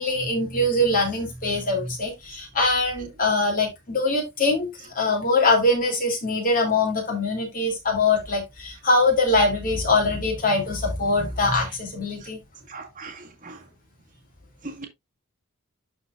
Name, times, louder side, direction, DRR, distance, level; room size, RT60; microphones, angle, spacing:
voice 1, 0.0-4.7 4.9-12.4, left 2 dB, 40° left, 3.0 m, -23 dB
voice 2, 12.7-13.6 14.6-14.8, right 3 dB, 40° right, 1.6 m, -39 dB
12.0 x 4.3 x 2.5 m
head